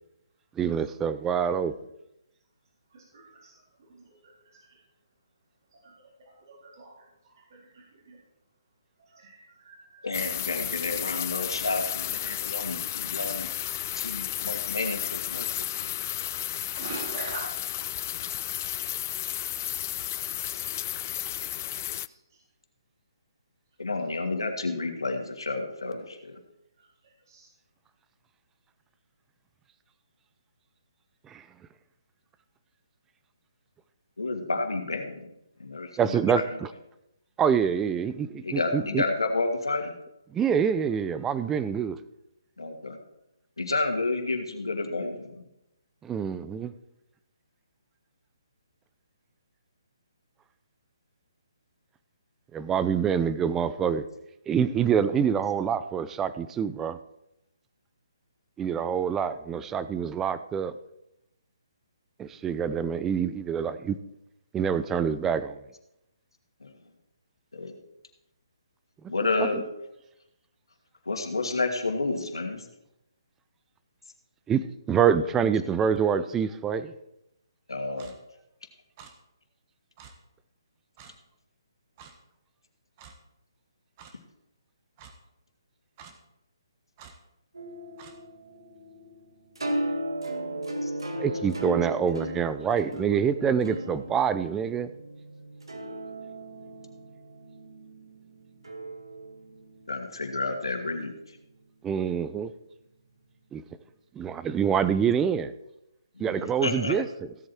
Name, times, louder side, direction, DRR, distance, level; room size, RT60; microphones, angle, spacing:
voice 1, 0.6-1.7 31.3-31.4 36.0-36.7 37.4-39.0 40.3-42.0 46.0-46.7 52.5-54.1 54.5-57.0 58.6-60.7 62.2-64.0 64.5-65.6 69.4-69.5 74.5-76.9 91.2-94.9 101.8-102.5 103.5-103.6 104.1-105.5 106.2-107.3, right 7 dB, 10° right, 0.6 m, -26 dB
voice 2, 2.9-3.5 4.1-4.6 5.7-5.9 6.2-6.9 7.2-8.2 9.1-10.1 16.7-17.5 21.4-21.5 21.9-22.0 27.3-27.5, right 3 dB, 50° right, 3.8 m, -43 dB
voice 3, 10.0-13.5 13.9-15.9 23.8-26.4 34.2-35.3 35.6-36.5 38.4-39.9 42.6-43.0 43.6-45.4 66.6-66.7 67.5-67.8 69.1-69.6 71.1-72.7 77.7-78.1 90.8-90.9 99.9-101.1 106.2-107.0, left 3 dB, 85° left, 2.5 m, -30 dB
sound 1, 10.1-22.1, left 12 dB, 35° left, 0.3 m, -33 dB
Clock, 78.0-78.1 79.0-79.1 80.0-80.1 81.0-81.1 82.0-82.1 83.0-83.2 84.0-84.1 85.0-85.1 86.0-86.2 87.0-87.1 88.0-88.1, right 6 dB, 30° right, 1.5 m, -48 dB
sound 2, 87.5-101.6, right 1 dB, 85° right, 2.1 m, -37 dB
16.5 x 8.0 x 4.5 m
hypercardioid pair, 145°, 2 cm